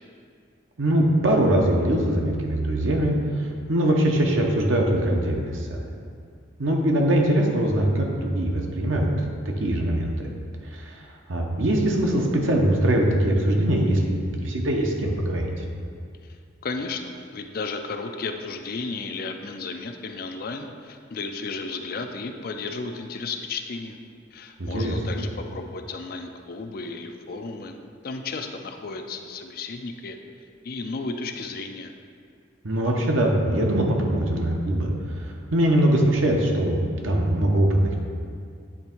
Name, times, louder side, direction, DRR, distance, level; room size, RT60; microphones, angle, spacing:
voice 1, 0.8-5.8 6.6-9.1 9.4-10.3 10.7-11.0 11.3-15.5 24.6-25.0 32.6-34.9 35.2-38.0, right 1 dB, 80° right, 1 dB, 0.9 m, -22 dB
voice 2, 16.6-17.0 17.3-24.0 24.3-30.2 30.6-31.9, left 4 dB, 50° left, 5 dB, 0.4 m, -33 dB
8.6 x 3.4 x 4.4 m, 2.2 s
head